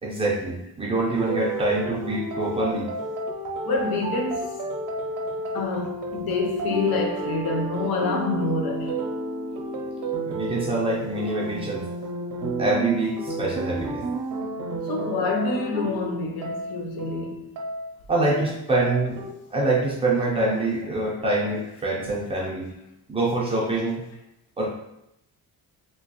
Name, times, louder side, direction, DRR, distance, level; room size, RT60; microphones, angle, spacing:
voice 1, 0.0-2.9 10.3-11.8 12.6-14.0 18.1-19.2 19.5-22.7 23.1-24.0 24.6-24.7, right 2 dB, 15° right, 0.6 m, -25 dB
sound 1, 1.0-19.3, right 2 dB, 55° right, 0.6 m, -31 dB
voice 2, 3.6-4.6 5.2-9.0 14.8-17.5, left 3 dB, 75° left, 0.6 m, -27 dB
3.1 x 2.9 x 2.9 m
cardioid pair, 175°, 37 cm